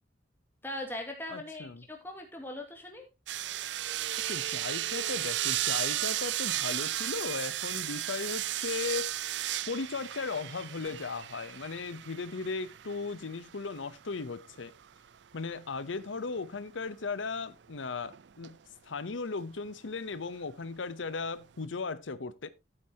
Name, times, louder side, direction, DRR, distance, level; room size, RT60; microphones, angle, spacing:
voice 1, 0.6-3.0, left 1 dB, 10° left, 2.4 m, -40 dB
voice 2, 1.3-1.8 4.3-9.1 9.7-14.7 15.3-18.6 18.9-22.5, left 4 dB, 85° left, 0.8 m, -37 dB
sound 1, 3.3-14.7 18.0-18.5 19.7-19.8, right 14 dB, 70° right, 0.4 m, -34 dB
12.5 x 8.9 x 2.8 m
head